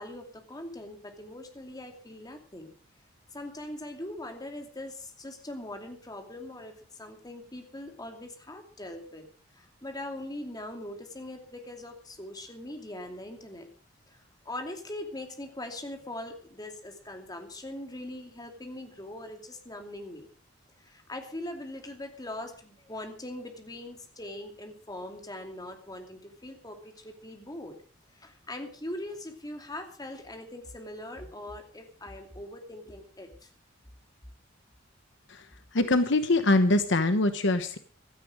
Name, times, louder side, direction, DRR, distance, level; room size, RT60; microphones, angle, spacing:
voice 1, 0.0-2.7 3.3-9.3 9.5-13.7 14.1-20.3 20.8-27.8 28.1-33.5, left 1 dB, 20° left, 4 dB, 2.6 m, -41 dB
voice 2, 35.7-37.8, left 2 dB, 60° left, 10 dB, 1.1 m, -23 dB
16.0 x 13.0 x 4.9 m, 0.42 s
head